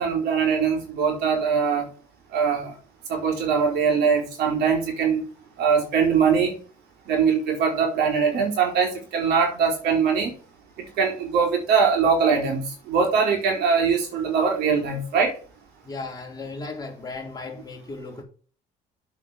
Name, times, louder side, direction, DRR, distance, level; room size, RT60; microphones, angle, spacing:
voice 1, 0.0-1.9 2.3-2.7 3.1-5.2 5.6-6.5 7.1-10.3 10.8-15.3, right 6 dB, 80° right, 4.1 m, -22 dB
voice 2, 15.8-18.2, left 3 dB, 25° left, 3.6 m, -36 dB
8.2 x 5.7 x 6.2 m
cardioid pair, 110°, 17 cm